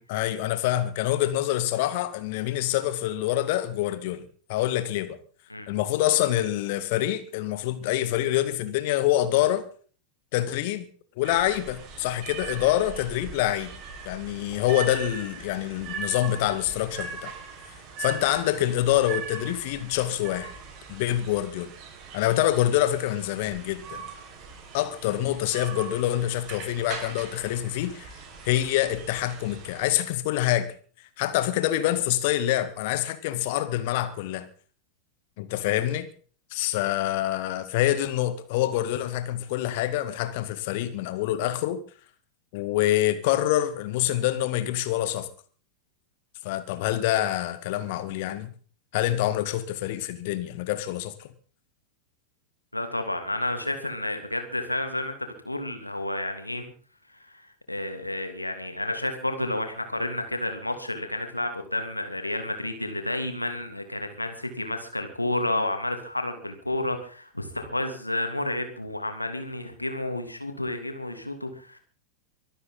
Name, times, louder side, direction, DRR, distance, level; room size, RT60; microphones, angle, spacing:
voice 1, 0.1-5.2 5.7-9.6 10.3-10.9 11.2-13.7 14.0-17.3 18.0-20.5 20.9-21.7 22.1-24.0 24.7-28.1 28.4-30.7 31.2-34.5 35.4-36.1 36.5-41.8 42.5-45.3 46.4-48.5 48.9-51.3, left 13 dB, 50° left, 1.9 m, -26 dB
sound 1, 11.2-29.9, right 6 dB, 35° right, 5.6 m, -40 dB
voice 2, 52.7-56.7 57.2-71.8, left 1 dB, 85° left, 2.8 m, -31 dB
24.0 x 12.5 x 4.0 m
figure-of-eight pair, 90°, 0 cm